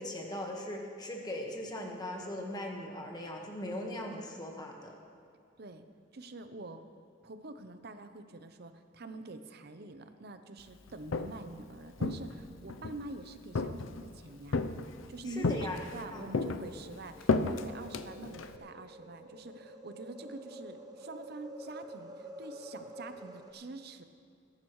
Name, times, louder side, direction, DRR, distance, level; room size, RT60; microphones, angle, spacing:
voice 1, 0.0-5.0 15.4-15.8 16.1-16.3, left 1 dB, 20° left, 1 dB, 1.4 m, -39 dB
voice 2, 6.1-6.8 7.2-14.6 15.1-24.0, right 2 dB, 55° right, 9 dB, 0.7 m, -46 dB
Walk footsteps, 10.9-11.5 12.0-13.0 13.6-14.1 14.5-15.1 15.4-16.0 16.3-18.6, left 3 dB, 90° left, 0.6 m, -32 dB
sound 1, 14.4-23.5, right 1 dB, 20° right, 0.9 m, -50 dB
20.5 x 11.5 x 3.2 m, 2.4 s
head